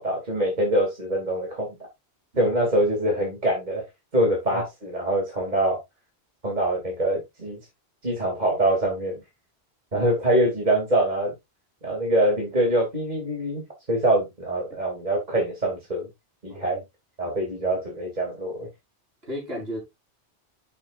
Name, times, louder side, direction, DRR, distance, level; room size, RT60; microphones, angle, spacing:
voice 1, 0.0-1.7 2.4-3.8 4.1-5.8 6.4-7.6 8.0-9.2 9.9-11.3 11.8-13.6 13.9-16.1 16.4-16.8 17.2-18.7, right 1 dB, 40° right, 2.9 m, -24 dB
voice 2, 19.2-19.8, equal, 65° right, 4.8 m, -34 dB
11.5 x 6.3 x 2.5 m
omnidirectional pair, 1.1 m